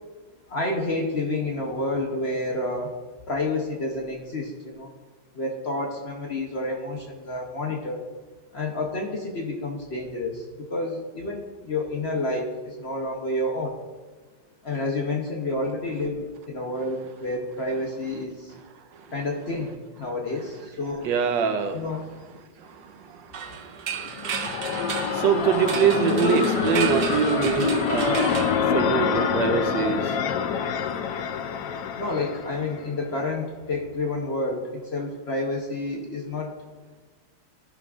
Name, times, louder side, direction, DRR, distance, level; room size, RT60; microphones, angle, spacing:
voice 1, 0.5-2.9 3.3-4.9 5.3-8.0 8.5-13.8 14.6-18.5 19.1-21.1 21.7-22.2 31.9-36.5, left 2 dB, 50° left, 0 dB, 0.8 m, -29 dB
voice 2, 21.0-21.8 22.6-24.3 25.1-30.2, right 7 dB, 85° right, 7 dB, 1.4 m, -25 dB
sound 1, 23.3-29.3, right 6 dB, 60° right, 1.0 m, -33 dB
sound 2, 24.1-32.9, left 7 dB, 70° left, 1.1 m, -26 dB
14.5 x 5.9 x 2.4 m, 1.3 s
omnidirectional pair, 2.0 m